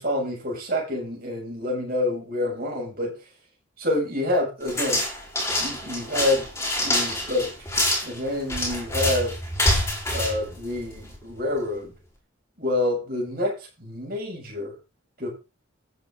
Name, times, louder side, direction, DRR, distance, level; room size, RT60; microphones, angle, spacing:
voice 1, 0.0-3.2 3.8-5.0 5.6-6.4 6.8-7.5 8.0-9.4 10.1-11.9 12.6-14.7 15.2-15.3, left 1 dB, 45° right, -1 dB, 7.9 m, -27 dB
sound 1, 4.7-11.2, left 1 dB, 15° left, 4.7 m, -26 dB
14.5 x 8.6 x 4.1 m, 0.29 s
head